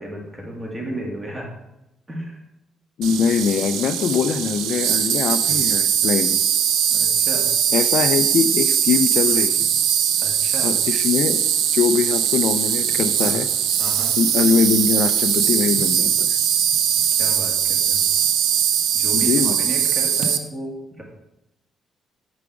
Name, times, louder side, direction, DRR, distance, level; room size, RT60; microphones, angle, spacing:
voice 1, 0.0-1.5 2.1-2.4 5.5-5.6 6.9-7.5 9.3-9.4 10.2-10.7 13.2-13.3 13.8-14.1 17.2-18.0 18.9-21.0, right 1 dB, 25° right, -1 dB, 1.8 m, -33 dB
voice 2, 3.0-6.4 7.7-9.6 10.6-11.4 11.7-13.5 14.2-16.4 19.1-19.6, left 6 dB, 70° left, 11 dB, 0.3 m, -22 dB
Insect, 3.0-20.4, right 9 dB, 90° right, 0.4 m, -20 dB
5.0 x 4.7 x 4.8 m, 0.90 s
cardioid pair, 90°, 0 cm